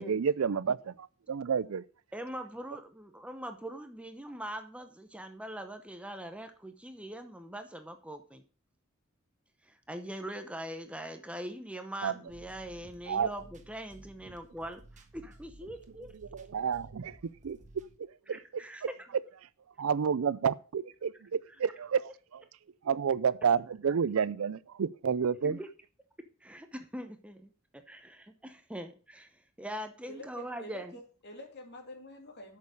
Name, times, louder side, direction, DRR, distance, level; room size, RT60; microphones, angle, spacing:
voice 1, 0.0-1.8 12.0-12.1 13.1-13.3 16.3-17.6 18.3-18.4 19.8-22.4 22.8-25.6, right 6 dB, 80° right, 0.5 m, -30 dB
voice 2, 2.1-8.4 9.6-16.1 18.3-19.1 25.4-25.7 26.4-31.0, right 1 dB, 5° right, 0.8 m, -42 dB
sound 1, 12.3-18.0, right 1 dB, 35° right, 1.3 m, -55 dB
voice 3, 30.0-32.6, left 1 dB, 55° left, 2.8 m, -47 dB
8.4 x 6.8 x 6.4 m
head